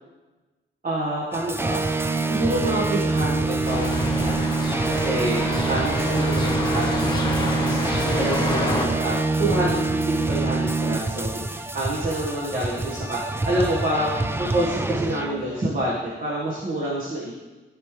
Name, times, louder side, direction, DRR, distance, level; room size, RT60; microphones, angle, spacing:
voice 1, 0.8-1.8 2.3-3.9 4.2-4.4 4.9-7.8 8.0-9.8 10.3-13.2 13.4-14.1 14.4-17.4, right 1 dB, 45° right, -6 dB, 1.8 m, -27 dB
sound 1, 1.3-15.7, right 3 dB, 10° right, 0.3 m, -25 dB
sound 2, 3.6-8.9, left 2 dB, 20° left, 1.3 m, -28 dB
16.5 x 5.6 x 3.4 m, 1.2 s
wide cardioid pair, 175°, 21 cm